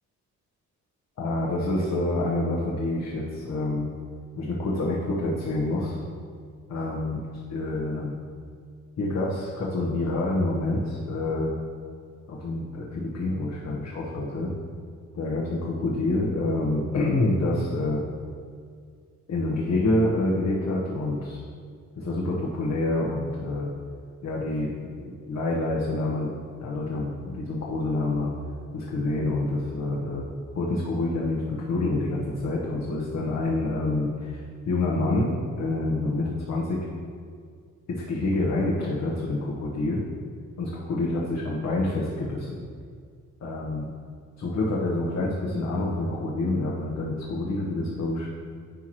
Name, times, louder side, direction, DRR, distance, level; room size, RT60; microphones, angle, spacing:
voice 1, 1.2-3.9 4.3-6.0 6.7-7.2 7.5-8.2 9.0-11.5 12.3-14.5 15.1-18.0 19.3-21.4 22.0-23.7 24.2-24.7 25.0-28.3 28.7-30.2 30.5-35.3 35.6-36.8 37.9-40.0 40.6-42.6 43.4-43.9 44.4-48.4, left 2 dB, 60° left, -4 dB, 1.1 m, -27 dB
10.0 x 4.7 x 3.0 m, 2.1 s
cardioid pair, 105°, 30 cm